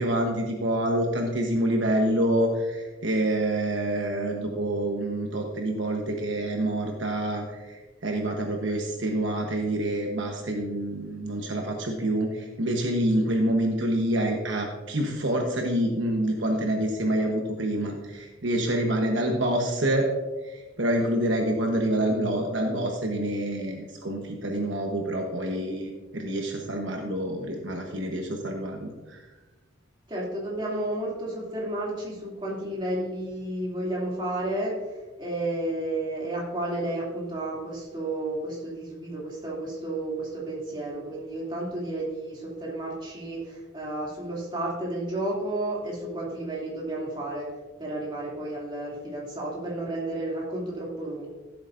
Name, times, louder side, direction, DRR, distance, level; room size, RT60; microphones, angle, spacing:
voice 1, 0.0-20.0 20.4-29.3, right 1 dB, 65° right, 1 dB, 1.1 m, -27 dB
voice 2, 30.1-34.8 35.2-47.5 47.8-51.3, right 1 dB, 25° right, -4 dB, 2.7 m, -32 dB
14.5 x 8.0 x 2.6 m, 1.2 s
head